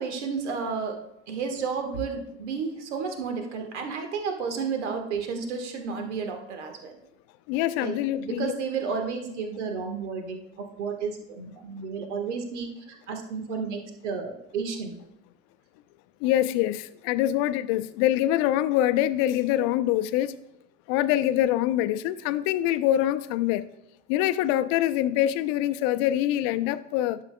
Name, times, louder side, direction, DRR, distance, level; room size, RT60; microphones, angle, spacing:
voice 1, 0.0-7.0 7.8-14.9, right 5 dB, 70° right, 5 dB, 1.5 m, -32 dB
voice 2, 7.5-8.5 16.2-20.4 20.9-23.7 24.1-27.2, left 13 dB, 50° left, 13 dB, 0.6 m, -24 dB
11.0 x 7.2 x 2.2 m, 0.81 s
hypercardioid pair, 80°, 36 cm